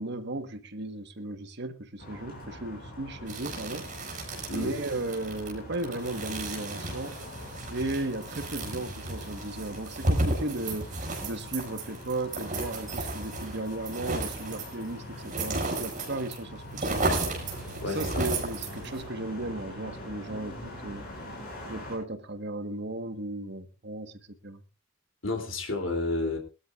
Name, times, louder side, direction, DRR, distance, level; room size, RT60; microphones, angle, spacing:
voice 1, 0.0-3.9 4.5-7.2 7.7-10.9 11.2-17.2 17.8-21.0 21.7-24.6, right 2 dB, 55° right, 1.4 m, -35 dB
sound 1, 2.0-22.0, left 1 dB, 45° left, 6.8 m, -43 dB
sound 2, 3.3-16.4 16.6-19.0, right 2 dB, 40° right, 5.9 m, -33 dB
voice 2, 4.5-4.8 17.8-18.3 25.2-26.4, left 2 dB, 70° left, 3.0 m, -31 dB
22.5 x 13.0 x 2.5 m
head